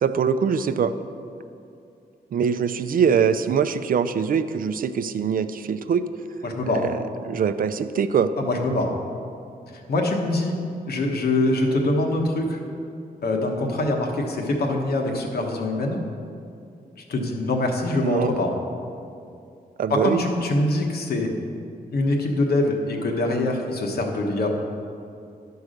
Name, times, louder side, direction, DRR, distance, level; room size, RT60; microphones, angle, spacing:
voice 1, 0.0-0.9 2.3-6.0 6.7-8.3 18.0-18.3 19.8-20.2, right 7 dB, 60° right, 11 dB, 0.4 m, -23 dB
voice 2, 6.4-6.9 8.4-8.9 9.9-10.6 10.9-12.6 13.2-16.0 17.1-18.6 19.9-21.3 21.9-24.6, left 2 dB, 75° left, 1 dB, 1.3 m, -24 dB
11.5 x 4.7 x 6.5 m, 2.5 s
wide cardioid pair, 140°, 16 cm